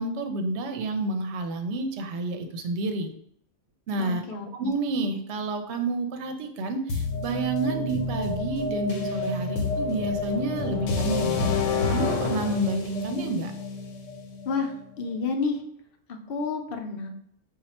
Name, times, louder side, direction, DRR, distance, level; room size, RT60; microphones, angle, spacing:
voice 1, 0.0-3.1 3.9-4.2 4.5-11.5 11.9-13.5, right 2 dB, 70° right, 6 dB, 0.8 m, -29 dB
voice 2, 4.0-4.4 14.4-15.6 16.1-17.1, left 4 dB, 60° left, 4 dB, 0.7 m, -30 dB
sound 1, 6.9-14.8, left 3 dB, 85° left, 1.0 m, -29 dB
4.2 x 2.4 x 4.1 m, 0.69 s
omnidirectional pair, 1.3 m